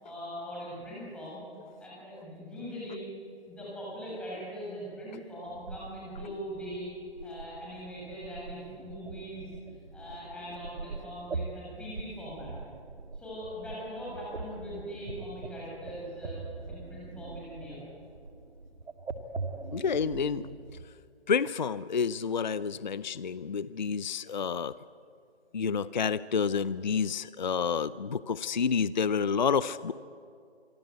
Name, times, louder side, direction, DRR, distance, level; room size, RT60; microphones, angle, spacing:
voice 1, 0.0-1.5 1.8-3.0 3.5-6.9 7.2-9.5 9.9-12.5 13.1-16.4 16.7-17.8 24.2-24.3, equal, 5° left, -7 dB, 7.5 m, -41 dB
sound 1, 5.5-20.9, right 3 dB, 85° right, 2.2 m, -42 dB
voice 2, 19.7-20.5 21.3-24.7 25.5-29.9, left 6 dB, 45° left, 17 dB, 0.5 m, -29 dB
26.5 x 24.0 x 8.2 m, 2.4 s
figure-of-eight pair, 160°, 33 cm